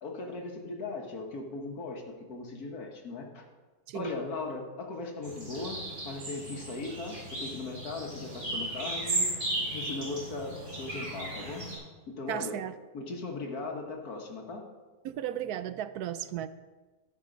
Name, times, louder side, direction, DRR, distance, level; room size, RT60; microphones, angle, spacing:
voice 1, 0.0-3.5 3.9-5.8 6.1-9.3 9.7-11.7 12.1-12.6 12.9-14.6, left 3 dB, 65° left, 2 dB, 1.9 m, -38 dB
sound 1, 5.2-11.8, right 2 dB, 45° right, 4.1 m, -35 dB
voice 2, 12.3-12.7 15.0-16.5, right 11 dB, 75° right, 12 dB, 1.1 m, -35 dB
15.0 x 5.5 x 5.2 m, 1.3 s
omnidirectional pair, 1.7 m